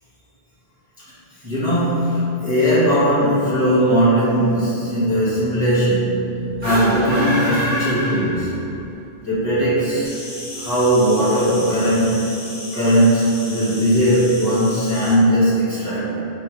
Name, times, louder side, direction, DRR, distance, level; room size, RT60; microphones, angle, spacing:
voice 1, 1.4-8.5 9.2-10.1 10.5-16.2, equal, 20° right, -13 dB, 1.2 m, -18 dB
sound 1, 6.5-8.8, equal, 65° right, 1.5 m, -25 dB
Insect, 10.0-15.1, left 1 dB, 50° left, 1.2 m, -35 dB
4.3 x 2.7 x 4.5 m, 2.8 s
omnidirectional pair, 1.1 m